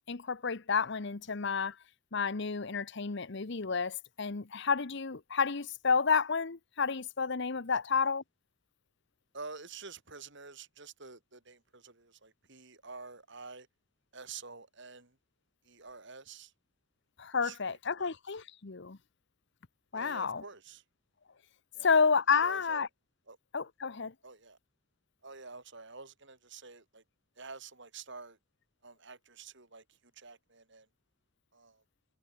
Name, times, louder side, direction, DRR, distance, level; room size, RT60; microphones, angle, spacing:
voice 1, 0.1-1.7 2.1-8.2 17.2-19.0 19.9-20.4 21.8-22.9 23.5-24.1, left 5 dB, 55° left, 0.9 m, -30 dB
voice 2, 9.3-13.7 14.1-15.2 15.6-16.5 17.4-18.2 19.9-20.8 21.7-21.9 22.4-22.8 23.3-23.4 24.2-24.6 25.2-27.0 27.4-28.4 28.8-30.9 31.5-31.8, right 4 dB, 60° right, 6.1 m, -49 dB
head